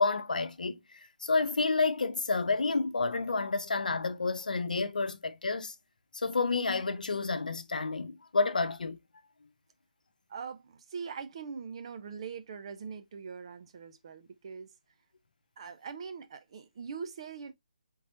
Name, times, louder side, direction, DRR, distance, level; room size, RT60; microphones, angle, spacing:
voice 1, 0.0-5.7 6.1-9.0, left 3 dB, 70° left, 0.8 m, -30 dB
voice 2, 10.3-14.7 15.6-17.5, right 6 dB, 40° right, 0.7 m, -42 dB
4.2 x 3.8 x 2.7 m
figure-of-eight pair, 150°, 5 cm